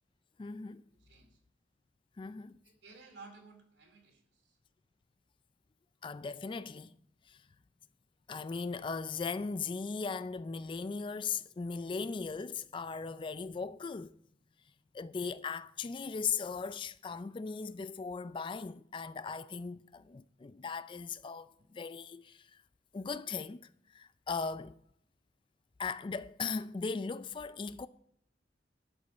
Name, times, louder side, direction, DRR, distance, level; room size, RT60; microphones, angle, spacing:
voice 1, 0.4-0.8 2.2-2.5 6.0-6.9 7.3-7.4 8.3-14.2 14.9-22.4 22.9-23.7 23.9-24.8 25.8-27.9, left 5 dB, 30° left, 0.3 m, -38 dB
voice 2, 1.0-1.4 2.6-4.6, right 4 dB, 75° right, 2.6 m, -55 dB
12.0 x 5.2 x 6.8 m
head